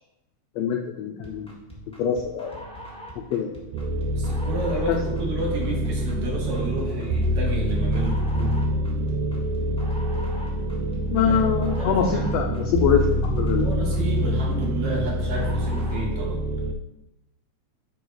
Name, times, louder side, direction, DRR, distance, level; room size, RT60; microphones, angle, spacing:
voice 1, 0.6-1.5 2.0-2.6 3.3-3.6 4.7-5.0 11.1-13.7, left 7 dB, 90° left, 1 dB, 1.5 m, -24 dB
sound 1, 1.2-16.2, right 1 dB, 5° left, 0.5 m, -40 dB
sound 2, 3.7-16.7, equal, 90° right, 1.4 m, -26 dB
voice 2, 4.1-8.6 11.2-12.7 13.5-16.4, right 1 dB, 70° right, -2 dB, 2.8 m, -31 dB
6.7 x 4.6 x 4.0 m, 0.91 s
omnidirectional pair, 3.5 m